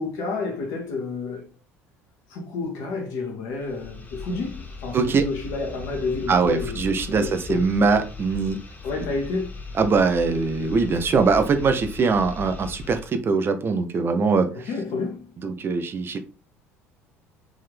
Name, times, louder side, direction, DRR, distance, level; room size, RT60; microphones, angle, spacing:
voice 1, 0.0-1.5 2.3-7.6 8.8-9.5 14.5-15.4, left 3 dB, 55° left, 0.7 m, -30 dB
sound 1, 3.5-13.2, left 4 dB, 25° left, 1.1 m, -38 dB
voice 2, 6.3-8.6 9.8-14.5 15.4-16.2, right 4 dB, 30° right, 0.5 m, -22 dB
3.5 x 2.7 x 3.4 m
figure-of-eight pair, 60°, 7 cm